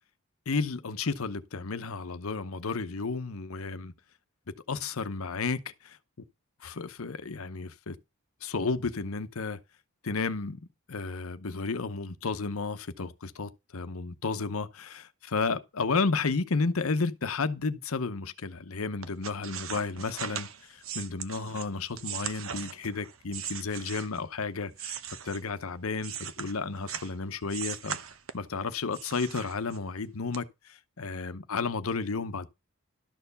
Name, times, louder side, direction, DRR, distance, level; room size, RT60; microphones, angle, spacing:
voice 1, 0.5-3.9 4.7-6.0 6.6-8.0 8.4-9.6 10.0-10.6 10.9-25.0 25.2-28.0 28.3-32.5, left 4 dB, 80° left, 0.8 m, -32 dB
sound 1, 19.0-24.3 24.7-27.1 27.5-28.5 28.9-30.0 30.3-30.4, right 8 dB, 70° right, 1.0 m, -39 dB
12.0 x 4.5 x 6.8 m
head